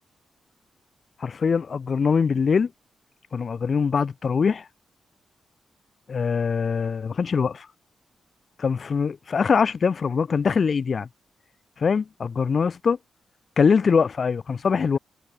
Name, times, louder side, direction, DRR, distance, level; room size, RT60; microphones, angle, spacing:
voice 1, 1.2-2.7 3.3-4.7 6.1-7.7 8.6-11.1 11.8-13.0 13.6-15.0, left 5 dB, 45° left, 1.5 m, -23 dB
wide cardioid pair, 130°, 0 cm